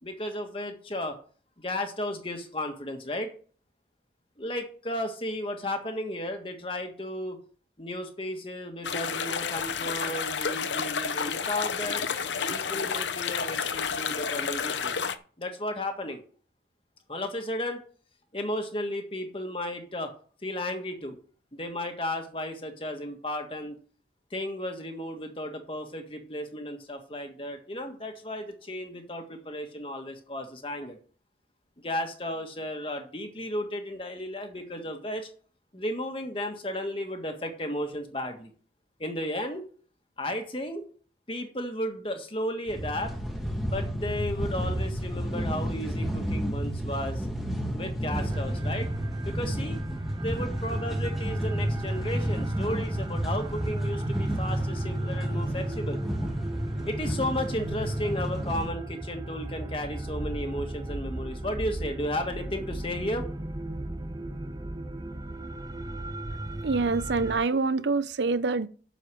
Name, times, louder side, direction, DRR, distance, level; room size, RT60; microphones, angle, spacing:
voice 1, 0.0-1.2 1.6-3.3 4.4-7.4 7.8-12.1 12.5-14.9 15.4-16.2 17.1-17.8 18.3-20.1 20.4-21.2 21.5-23.8 24.3-31.0 31.8-35.3 35.7-38.5 39.0-39.6 40.2-40.8 41.3-43.1 43.6-47.3 47.7-48.9 49.2-49.8 50.2-56.0 56.8-63.2, left 1 dB, 30° left, 1.7 m, -34 dB
sound 1, 8.8-15.2, left 6 dB, 80° left, 0.8 m, -30 dB
sound 2, 42.7-58.7, equal, ahead, 1.8 m, -33 dB
sound 3, 48.2-67.4, right 1 dB, 20° right, 0.5 m, -34 dB
voice 2, 66.6-68.7, right 4 dB, 75° right, 0.6 m, -26 dB
8.0 x 7.0 x 7.6 m
head